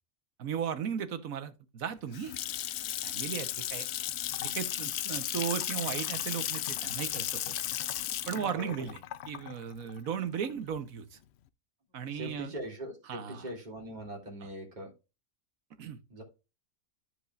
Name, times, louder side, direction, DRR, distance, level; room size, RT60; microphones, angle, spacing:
voice 1, 0.4-2.3 3.0-3.9 4.4-7.5 8.3-9.0 9.3-11.2 11.9-12.5 13.1-13.5 15.8-16.0, right 8 dB, 80° right, 1.5 m, -36 dB
Water tap faucet / Sink (filling or washing) / Splash splatter, 1.9-10.8, left 11 dB, 65° left, 0.7 m, -35 dB
voice 2, 8.3-8.8 12.1-14.9 16.1-16.2, right 1 dB, 30° right, 2.8 m, -41 dB
14.0 x 5.2 x 2.4 m
omnidirectional pair, 1.4 m